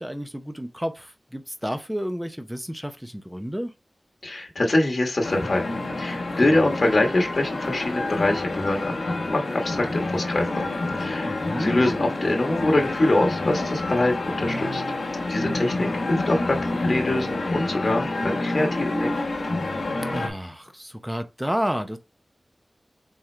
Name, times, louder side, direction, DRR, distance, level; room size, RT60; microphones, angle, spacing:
voice 1, 0.0-3.7 11.2-11.7 20.1-22.0, equal, 5° right, 0.7 m, -31 dB
voice 2, 4.2-5.7 6.0-10.7 11.0-14.8 15.3-19.2, left 2 dB, 55° left, 1.1 m, -24 dB
sound 1, 5.2-20.3, left 2 dB, 85° left, 1.0 m, -28 dB
4.2 x 3.7 x 3.2 m
wide cardioid pair, 60°, 0 cm